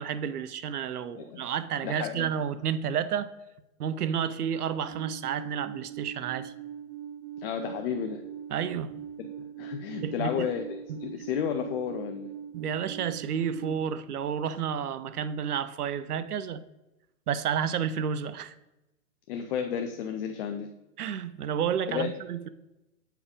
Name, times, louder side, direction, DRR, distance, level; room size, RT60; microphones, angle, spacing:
voice 1, 0.0-3.3 3.8-6.5 8.5-9.0 10.0-10.5 10.9-11.3 12.5-16.6 17.3-18.5 21.0-22.5, right 8 dB, 80° right, 0.7 m, -31 dB
voice 2, 1.8-2.3 7.4-8.2 9.2-10.6 11.0-12.3 19.3-20.7 21.9-22.2, left 8 dB, 40° left, 0.6 m, -32 dB
Alarm, 4.8-13.7, right 9 dB, 40° right, 0.5 m, -41 dB
8.5 x 4.6 x 5.1 m
hypercardioid pair, 130°, 45 cm